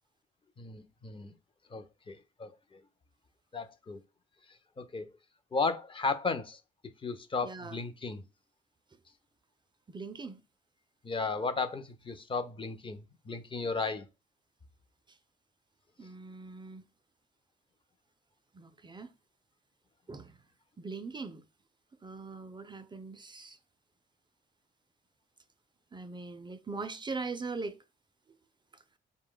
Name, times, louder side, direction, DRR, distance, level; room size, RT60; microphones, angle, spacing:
voice 1, 0.6-1.3 1.7-2.8 3.5-4.0 4.8-5.1 5.5-6.6 7.0-8.2 11.0-14.1, left 4 dB, 25° left, 0.5 m, -35 dB
voice 2, 7.4-7.8 9.9-10.4 16.0-16.8 18.5-19.1 20.1-20.4 20.8-21.4 22.0-23.6 25.9-27.8, right 4 dB, 25° right, 0.4 m, -41 dB
4.5 x 2.2 x 3.7 m
cardioid pair, 90°, 20 cm